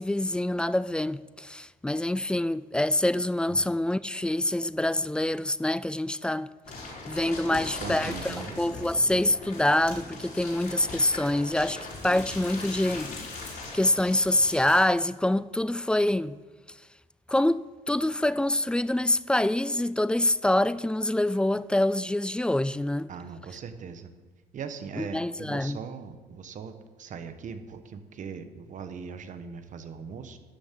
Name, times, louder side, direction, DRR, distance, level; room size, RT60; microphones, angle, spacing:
voice 1, 0.0-6.5 7.1-13.1 13.7-16.4 17.3-23.1 25.0-25.8, left 1 dB, 5° left, 0.3 m, -26 dB
sound 1, 6.6-14.9, left 3 dB, 55° left, 4.3 m, -39 dB
voice 2, 7.5-8.6 23.1-24.1 24.5-30.4, right 6 dB, 50° right, 1.2 m, -40 dB
12.5 x 7.1 x 7.6 m
cardioid pair, 110°, 17 cm